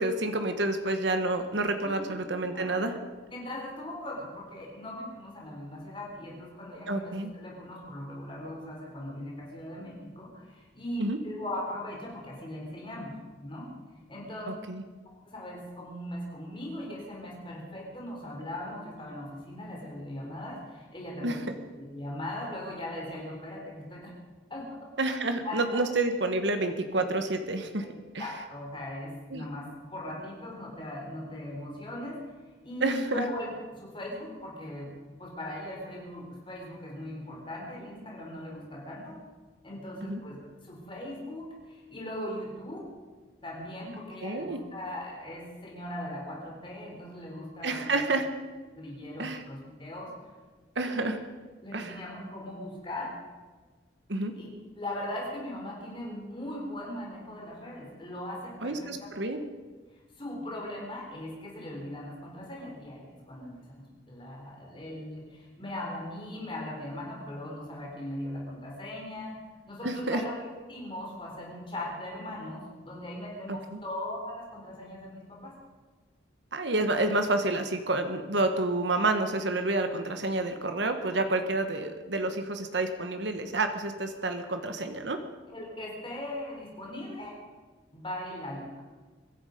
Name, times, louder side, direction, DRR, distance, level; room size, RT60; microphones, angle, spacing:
voice 1, 0.0-3.0 6.9-7.3 11.0-11.2 14.5-14.8 21.2-21.4 25.0-27.9 28.1-28.3 29.3-29.5 32.8-33.2 40.0-40.2 44.2-44.6 47.6-48.3 49.2-49.4 50.7-51.2 51.7-52.0 54.1-54.3 58.6-59.4 69.8-70.2 73.7-73.8 76.5-85.2, right 2 dB, 80° right, 7 dB, 1.4 m, -29 dB
voice 2, 1.8-3.0 3.3-13.7 14.1-14.5 15.3-24.1 24.5-24.8 25.2-25.8 27.8-27.9 28.2-32.3 32.6-34.9 35.2-39.2 39.6-42.9 43.4-48.0 48.8-50.1 51.6-53.1 54.4-54.5 54.8-59.1 60.2-69.4 69.7-75.6 76.7-76.8 78.5-78.6 85.5-87.4 87.9-88.8, left 1 dB, 25° left, -1 dB, 3.6 m, -39 dB
23.5 x 11.0 x 5.2 m, 1.4 s
head